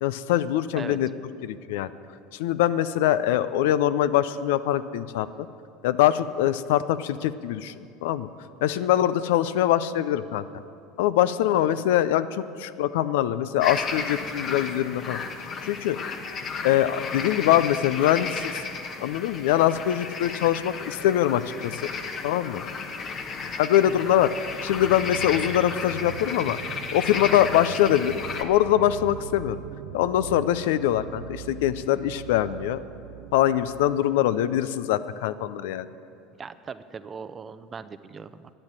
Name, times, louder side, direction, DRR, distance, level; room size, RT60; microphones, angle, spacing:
voice 1, 0.0-1.1 1.4-1.9 2.3-5.3 5.8-7.7 8.0-8.3 8.6-10.4 11.0-15.2 15.6-16.0 16.6-18.6 19.0-21.7 22.2-22.6 23.6-26.6 26.9-29.6 29.9-32.8 33.3-35.9, left 12 dB, 75° left, 14 dB, 0.4 m, -23 dB
sound 1, 13.6-28.4, left 5 dB, 45° left, 1.2 m, -34 dB
sound 2, 24.7-34.0, right 12 dB, 75° right, 0.3 m, -41 dB
voice 2, 36.4-38.5, right 5 dB, 30° right, 13 dB, 0.6 m, -39 dB
12.0 x 8.9 x 7.5 m, 2.5 s
hypercardioid pair, 85°, 0 cm